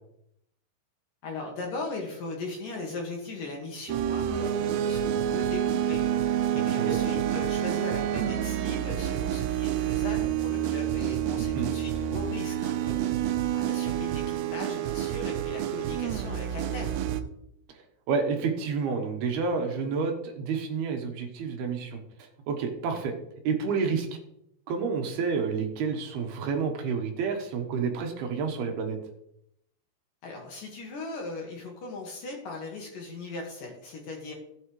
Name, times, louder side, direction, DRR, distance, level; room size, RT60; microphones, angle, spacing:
voice 1, 1.2-6.0 6.5-13.2 13.5-17.0 30.2-34.3, left 3 dB, 60° left, 0 dB, 2.6 m, -38 dB
sound 1, 3.9-17.2, right 10 dB, 90° right, 2.5 m, -28 dB
voice 2, 11.4-11.7 18.1-22.0 22.5-23.1 23.4-24.1 24.7-29.0, right 5 dB, 70° right, 3 dB, 2.6 m, -29 dB
15.0 x 9.2 x 3.2 m, 0.77 s
omnidirectional pair, 5.7 m